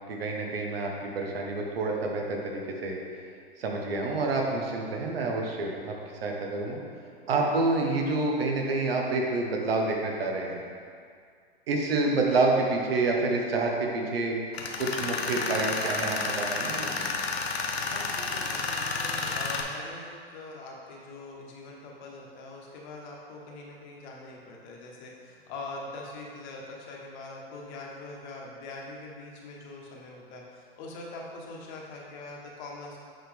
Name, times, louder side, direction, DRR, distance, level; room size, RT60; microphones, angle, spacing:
voice 1, 0.1-3.0 3.6-6.0 6.2-6.8 7.3-10.6 11.7-14.4 14.8-17.0, right 3 dB, 70° right, 0 dB, 1.2 m, -28 dB
Tools, 14.5-19.6, left 4 dB, 85° left, 0.8 m, -31 dB
voice 2, 17.7-33.0, left 2 dB, 50° left, -2 dB, 1.4 m, -43 dB
7.6 x 4.4 x 3.5 m, 2.2 s
hypercardioid pair, 120°, 30 cm